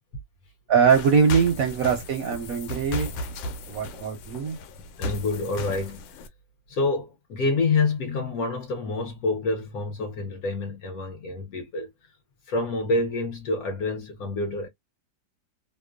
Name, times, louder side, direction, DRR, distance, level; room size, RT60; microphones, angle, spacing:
voice 1, 0.7-3.1 3.7-4.6, right 6 dB, 65° right, 0.9 m, -22 dB
sound 1, 0.9-6.3, left 1 dB, 90° left, 1.3 m, -35 dB
voice 2, 5.0-6.1 6.7-11.9 12.5-14.7, left 3 dB, 60° left, 1.0 m, -27 dB
3.0 x 2.0 x 2.3 m
omnidirectional pair, 2.0 m